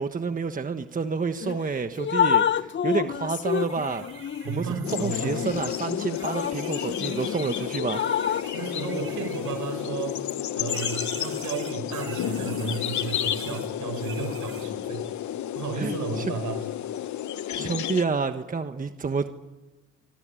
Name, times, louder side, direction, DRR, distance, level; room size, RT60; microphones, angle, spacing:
voice 1, 0.0-4.0 4.5-8.0 15.8-16.3 17.5-19.3, right 4 dB, 25° right, 8 dB, 1.4 m, -29 dB
Drip, 1.4-1.6 2.0-7.4 7.8-8.5, left 8 dB, 40° left, 0.9 m, -28 dB
sound 1, 3.4-10.4 10.7-14.7, right 5 dB, 45° right, 4.9 m, -45 dB
voice 2, 4.4-5.5 8.5-10.2 10.5-15.0 15.6-16.6, right 6 dB, 80° right, 7 dB, 6.9 m, -33 dB
sound 2, 4.8-18.0, left 11 dB, 70° left, 1.1 m, -31 dB
25.5 x 24.0 x 9.1 m, 1.1 s
cardioid pair, 90°, 30 cm